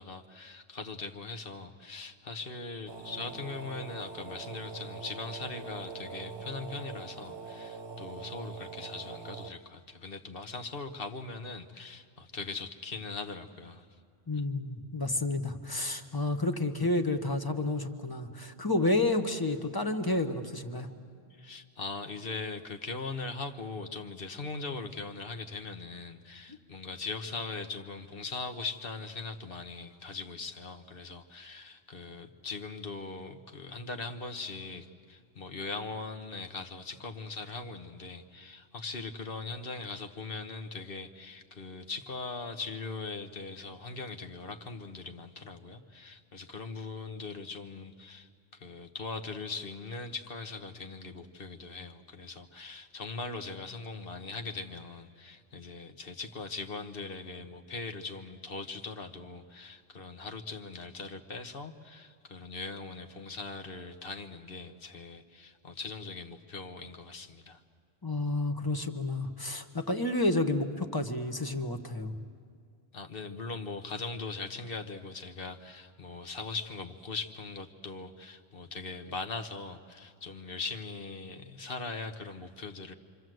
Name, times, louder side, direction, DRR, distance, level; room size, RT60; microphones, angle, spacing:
voice 1, 0.0-14.0 21.3-67.6 72.9-82.9, left 4 dB, 60° left, 7 dB, 1.4 m, -40 dB
sound 1, 2.9-9.5, right 4 dB, 60° right, 1.1 m, -43 dB
voice 2, 14.3-20.9 68.0-72.1, left 2 dB, 20° left, 7 dB, 1.2 m, -30 dB
27.0 x 25.5 x 7.8 m, 2.2 s
omnidirectional pair, 1.1 m